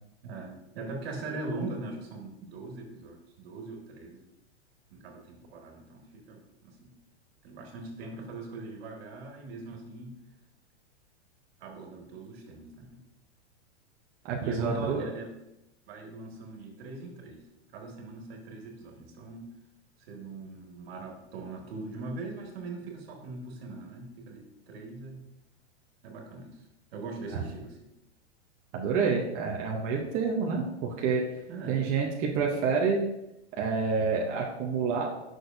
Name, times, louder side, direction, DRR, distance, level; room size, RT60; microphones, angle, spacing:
voice 1, 0.2-4.3 4.9-6.9 7.4-10.1 11.6-13.0 14.4-15.3 15.9-17.4 17.7-19.5 20.0-25.2 26.0-26.6 26.9-27.8 31.5-31.9, right 2 dB, 60° right, 1 dB, 1.9 m, -41 dB
voice 2, 14.3-15.1 27.3-27.4 28.7-31.2 31.7-33.0 33.6-35.1, right 5 dB, 25° right, -1 dB, 0.7 m, -28 dB
9.8 x 6.2 x 2.6 m, 0.89 s
supercardioid pair, 155°, 35 cm